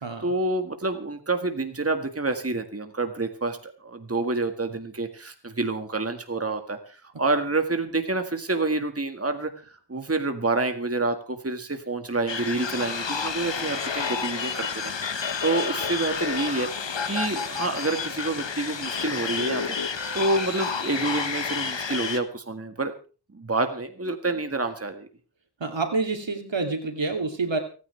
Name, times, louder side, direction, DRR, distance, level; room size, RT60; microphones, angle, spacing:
voice 1, 0.2-9.5 9.9-19.8 20.1-22.9 23.3-25.1, right 2 dB, 30° right, 6 dB, 1.8 m, -28 dB
sound 1, 12.3-22.2, left 5 dB, 75° left, 1.4 m, -30 dB
voice 2, 25.6-27.6, right 3 dB, 80° right, 5 dB, 2.8 m, -27 dB
29.5 x 9.8 x 3.4 m, 0.36 s
cardioid pair, 40°, 44 cm